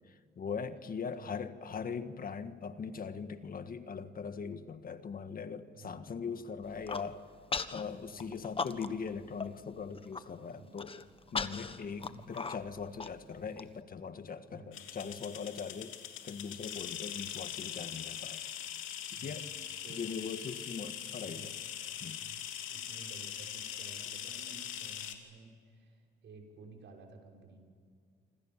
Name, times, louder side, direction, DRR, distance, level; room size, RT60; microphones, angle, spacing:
voice 1, 0.1-7.3 7.7-11.0 11.3-16.0 16.2-18.4 19.1-19.5 19.9-21.5 22.0-22.2, left 6 dB, 45° left, 10 dB, 1.7 m, -41 dB
voice 2, 1.2-1.5 5.7-6.2 7.8-8.3 8.6-8.7 10.3-10.9 12.1-12.4 13.3-13.5 14.5-14.8 19.1-19.4 19.8-20.1 20.6-20.9 21.2-21.5 22.2-27.6, right 4 dB, 65° right, 2 dB, 6.4 m, -54 dB
Human voice, 6.6-7.1 7.5-7.8 8.2-9.1 9.4-9.5 9.9-10.2 10.8-13.6, left 4 dB, 30° left, 1.3 m, -37 dB
sound 1, 14.7-25.2, left 10 dB, 90° left, 2.8 m, -42 dB
27.5 x 25.5 x 7.5 m, 2.1 s
cardioid pair, 90°, 20 cm